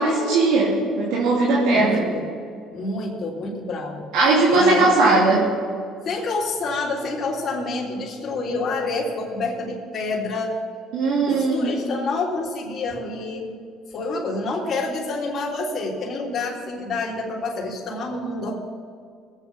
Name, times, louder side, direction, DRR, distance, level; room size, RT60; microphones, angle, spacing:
voice 1, 0.0-2.0 4.1-5.5 10.9-11.8, right 3 dB, 80° right, -4 dB, 2.7 m, -19 dB
voice 2, 1.7-2.3 2.7-4.0 4.5-5.2 6.0-10.6 11.1-13.5 13.9-18.6, left 3 dB, 40° left, -4 dB, 3.4 m, -28 dB
21.5 x 8.3 x 5.6 m, 2.2 s
cardioid pair, 105°, 0 cm